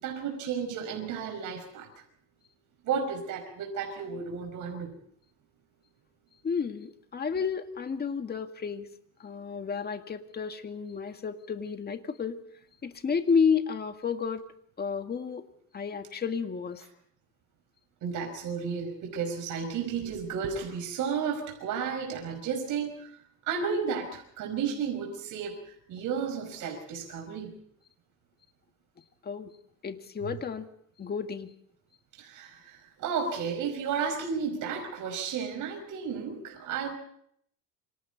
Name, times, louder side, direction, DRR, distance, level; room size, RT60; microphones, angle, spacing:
voice 1, 0.0-1.9 2.8-4.9 18.0-23.2 23.5-27.5 32.1-37.0, right 6 dB, 65° right, 3 dB, 5.6 m, -33 dB
voice 2, 6.4-8.9 9.2-12.4 12.8-14.4 14.8-15.4 15.7-16.8 29.2-29.5 29.8-30.7 31.0-31.5, left 6 dB, 30° left, 7 dB, 2.0 m, -31 dB
28.0 x 25.0 x 4.1 m, 0.67 s
cardioid pair, 130°, 34 cm